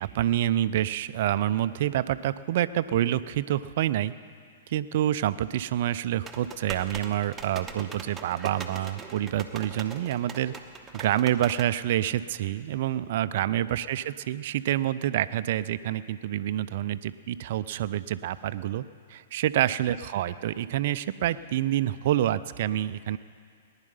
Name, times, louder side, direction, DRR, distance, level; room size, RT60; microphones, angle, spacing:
voice 1, 0.0-4.1 4.7-10.5 10.9-18.8 19.1-23.2, right 12 dB, 50° right, 15 dB, 0.5 m, -27 dB
sound 1, 6.3-11.7, right 4 dB, 15° right, 1.1 m, -41 dB
19.5 x 10.5 x 5.5 m, 2.2 s
figure-of-eight pair, 110°, 0 cm